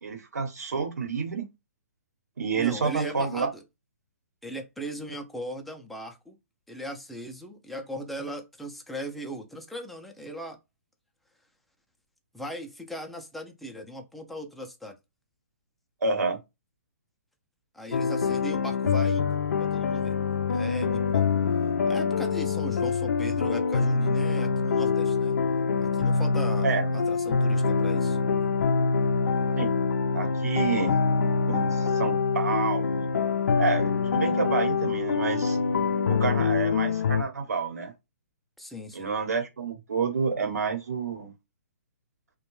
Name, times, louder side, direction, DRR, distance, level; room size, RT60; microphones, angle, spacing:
voice 1, 0.0-1.4 2.4-3.5 16.0-16.4 26.6-26.9 29.6-29.7 30.1-31.0 31.5-33.1 33.6-35.6 36.1-37.9 38.9-41.3, right 5 dB, 80° right, 1.0 m, -29 dB
voice 2, 2.6-3.6 4.4-6.4 6.7-10.6 12.3-15.0 17.7-20.2 20.5-21.3 21.9-25.4 25.8-26.7 26.9-28.2 38.6-39.1, equal, ahead, 0.4 m, -38 dB
sound 1, 17.9-37.2, left 5 dB, 75° left, 0.4 m, -25 dB
2.5 x 2.2 x 3.0 m
hypercardioid pair, 140°, 8 cm